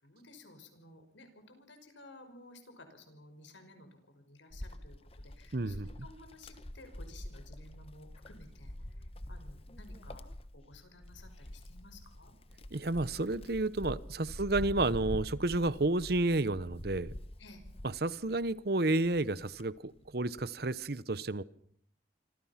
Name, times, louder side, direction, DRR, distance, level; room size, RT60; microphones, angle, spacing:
voice 1, 0.0-10.3 10.5-12.3 14.2-14.3 17.4-17.6, left 2 dB, 85° left, 7 dB, 5.7 m, -55 dB
Wind, 4.5-18.6 19.0-20.5, left 1 dB, 30° left, 1.2 m, -46 dB
voice 2, 5.5-5.9 12.7-17.1 17.8-21.4, right 2 dB, 55° right, 17 dB, 0.9 m, -31 dB
27.0 x 26.0 x 5.9 m, 0.63 s
head